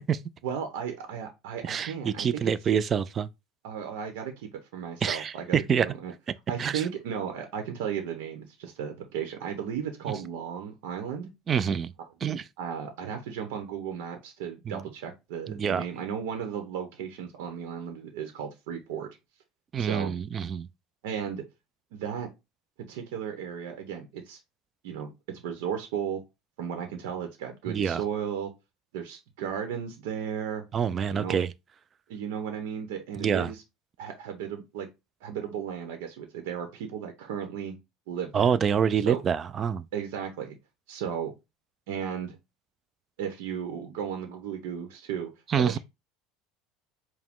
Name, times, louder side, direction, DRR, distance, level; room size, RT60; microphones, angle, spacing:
voice 1, 0.4-2.5 3.6-5.6 5.8-6.1 6.5-11.3 12.6-19.1 19.8-20.1 21.0-21.4 21.9-22.3 22.9-24.4 24.8-26.2 26.6-28.5 28.9-30.6 31.1-31.4 32.1-33.6 34.0-34.9 35.2-37.8 38.1-38.5 39.0-39.2 39.9-40.6 40.9-41.3 41.9-42.4 43.2-45.3 45.5-45.8, right 8 dB, 80° right, 0.9 m, -35 dB
voice 2, 1.7-3.3 5.0-5.9 6.6-6.8 11.5-11.9 12.2-12.4 14.7-14.8 15.5-15.8 19.7-20.7 27.7-28.0 30.7-31.5 33.2-33.5 38.3-39.8 45.5-45.8, right 7 dB, 30° right, 0.3 m, -26 dB
4.8 x 2.2 x 3.7 m
supercardioid pair, 135°, 0 cm